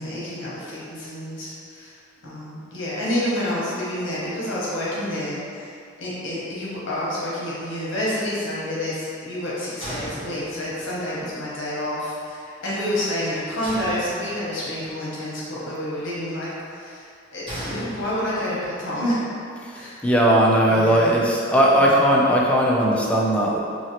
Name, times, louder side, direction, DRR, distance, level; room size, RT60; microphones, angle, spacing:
voice 1, 0.0-1.9 2.2-19.2 19.7-20.0 20.7-21.1 21.7-22.0, left 1 dB, 65° left, -7 dB, 0.9 m, -29 dB
sound 1, 9.8-10.9 13.6-14.7 17.5-18.6, equal, 25° right, 1.1 m, -36 dB
voice 2, 19.6-23.6, right 1 dB, 5° left, -4 dB, 0.3 m, -18 dB
2.9 x 2.7 x 2.8 m, 2.4 s
head